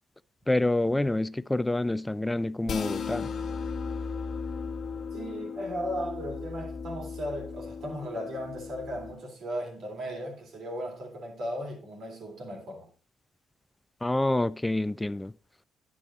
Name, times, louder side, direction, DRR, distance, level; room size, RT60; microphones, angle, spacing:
voice 1, 0.5-3.3 14.0-15.3, left 1 dB, 15° left, 0.4 m, -27 dB
sound 1, 2.6-9.1, left 5 dB, 55° left, 1.1 m, -36 dB
voice 2, 5.1-12.9, equal, 65° right, 3.4 m, -36 dB
10.5 x 6.2 x 3.8 m
hypercardioid pair, 50°, 0 cm